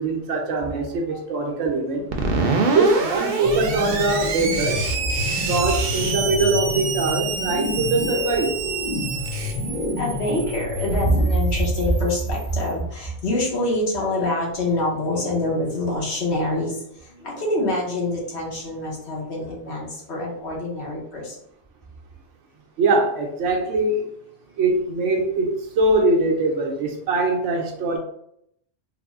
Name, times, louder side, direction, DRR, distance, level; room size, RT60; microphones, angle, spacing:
voice 1, 0.0-2.1 2.7-4.8 5.5-8.5 22.8-24.1 24.6-28.0, right 2 dB, 90° right, 1 dB, 1.0 m, -22 dB
Screech, 2.1-12.6, right 4 dB, 60° right, 0.7 m, -27 dB
sound 1, 3.4-11.3, left 2 dB, 20° left, 1.0 m, -29 dB
voice 2, 5.2-5.5 10.0-21.4, left 1 dB, 65° left, -3 dB, 1.2 m, -25 dB
3.4 x 2.0 x 3.5 m, 0.72 s
omnidirectional pair, 1.2 m